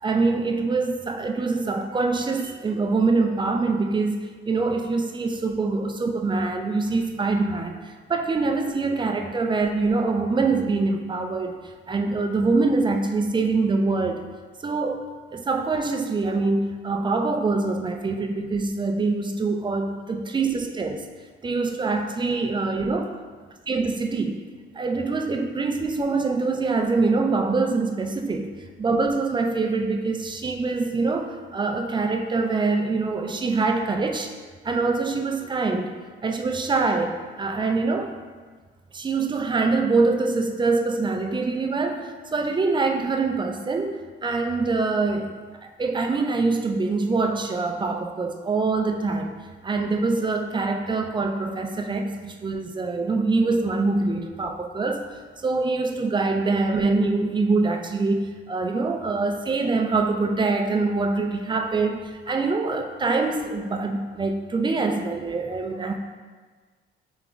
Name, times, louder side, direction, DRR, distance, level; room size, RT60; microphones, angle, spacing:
voice 1, 0.0-11.6 11.9-14.3 14.6-15.0 15.3-21.1 21.4-23.1 23.7-24.4 24.7-28.5 28.8-34.3 34.6-35.9 36.2-38.2 38.9-45.3 45.6-49.3 49.6-55.1 55.4-66.0, right 3 dB, 25° right, 4 dB, 0.4 m, -24 dB
3.5 x 3.2 x 3.8 m, 1.4 s
cardioid pair, 90°, 20 cm